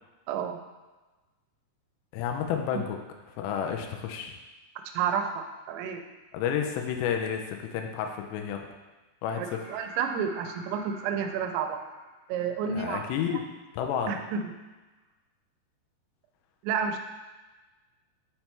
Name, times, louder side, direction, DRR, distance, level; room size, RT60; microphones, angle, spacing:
voice 1, 0.3-0.6 2.7-2.8 4.9-6.1 9.4-11.8 12.3-13.4 14.1-14.5 16.6-17.0, right 7 dB, 90° right, 6 dB, 2.9 m, -31 dB
voice 2, 2.1-3.0 3.4-4.3 6.3-8.7 9.2-9.6 12.7-13.4 13.7-14.2, left 8 dB, 85° left, 3 dB, 2.7 m, -30 dB
sound 1, 9.3-13.1 15.0-15.1, right 2 dB, 70° right, 2.6 m, -49 dB
7.0 x 3.3 x 4.4 m, 1.2 s
omnidirectional pair, 5.1 m